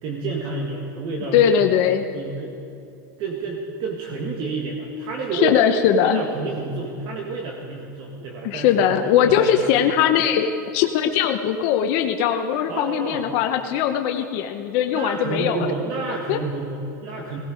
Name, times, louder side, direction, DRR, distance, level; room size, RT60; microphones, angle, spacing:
voice 1, 0.0-1.6 2.1-2.6 3.2-5.6 6.0-9.8 12.7-13.3 14.9-17.4, right 3 dB, 45° right, 0 dB, 1.8 m, -29 dB
voice 2, 1.3-2.0 5.3-6.2 8.4-15.7 16.3-16.4, left 9 dB, 55° left, 6 dB, 0.9 m, -20 dB
18.0 x 15.0 x 5.1 m, 2.6 s
supercardioid pair, 125°, 11 cm